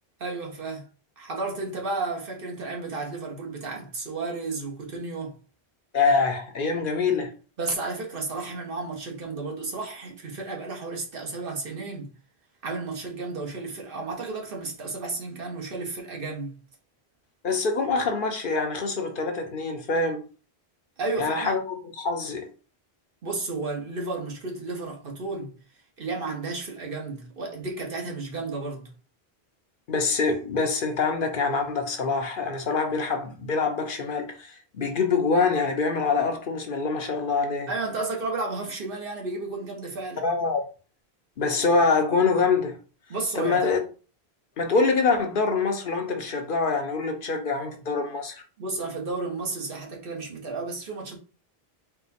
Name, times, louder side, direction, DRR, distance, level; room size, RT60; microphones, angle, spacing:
voice 1, 0.2-0.8 1.2-5.4 7.6-12.1 12.6-16.6 21.0-21.5 23.2-25.5 26.0-28.9 37.7-40.2 43.1-43.7 48.6-51.2, right 3 dB, 60° right, 1.2 m, -32 dB
voice 2, 5.9-7.3 17.4-20.2 21.2-22.5 29.9-37.7 40.2-40.6 41.4-42.8 43.4-43.8 44.6-48.3, left 4 dB, 60° left, 0.8 m, -25 dB
4.4 x 2.2 x 4.1 m
omnidirectional pair, 1.1 m